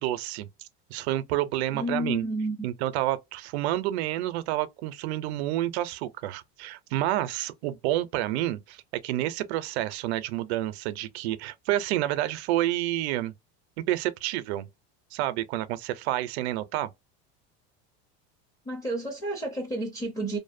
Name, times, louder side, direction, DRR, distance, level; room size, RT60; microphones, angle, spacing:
voice 1, 0.0-2.2 2.6-13.3 13.9-14.7 15.1-16.9, right 14 dB, 85° right, 0.5 m, -29 dB
voice 2, 1.7-2.7 18.6-20.4, right 1 dB, 10° left, 0.4 m, -31 dB
2.6 x 2.1 x 2.5 m
cardioid pair, 165°, 32 cm